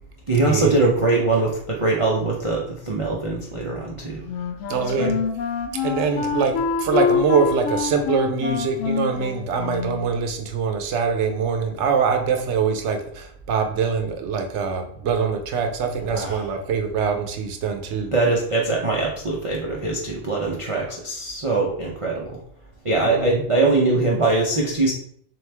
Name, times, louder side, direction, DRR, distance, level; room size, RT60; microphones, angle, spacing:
voice 1, 0.3-4.2 5.0-5.1 16.1-16.4 18.1-22.4 22.8-24.9, right 3 dB, 45° right, -3 dB, 0.4 m, -22 dB
Wind instrument woodwind instrument, 4.2-10.1, left 6 dB, 80° left, 0.9 m, -25 dB
voice 2, 4.7-5.2 5.7-18.1 23.0-23.4, right 5 dB, 70° right, 5 dB, 0.9 m, -24 dB
3.9 x 3.1 x 3.3 m, 0.65 s
omnidirectional pair, 1.3 m